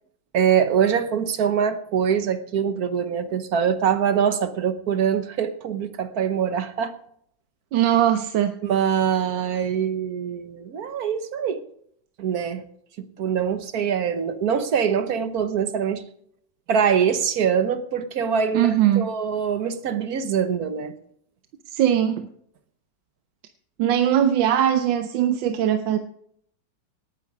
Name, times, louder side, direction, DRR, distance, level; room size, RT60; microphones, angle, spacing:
voice 1, 0.3-6.9 8.6-11.6 12.2-12.6 13.2-16.0 16.7-20.9, right 7 dB, 60° right, 10 dB, 1.4 m, -23 dB
voice 2, 7.7-8.5 18.5-19.1 21.7-22.3 23.8-26.0, right 10 dB, 90° right, 9 dB, 1.5 m, -20 dB
18.5 x 9.7 x 4.9 m, 0.69 s
omnidirectional pair, 2.0 m